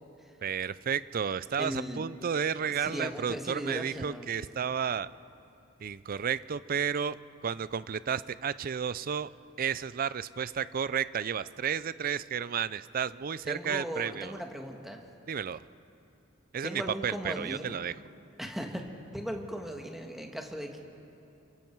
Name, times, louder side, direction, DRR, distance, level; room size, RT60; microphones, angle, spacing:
voice 1, 0.4-5.1 5.8-7.2 7.4-9.3 9.6-14.4 15.3-15.6 16.5-18.0, right 7 dB, 45° right, 17 dB, 0.4 m, -32 dB
voice 2, 1.6-2.1 2.8-4.3 13.5-15.0 16.6-17.7 18.4-20.8, equal, ahead, 2 dB, 1.7 m, -37 dB
28.5 x 23.5 x 4.6 m, 2.8 s
head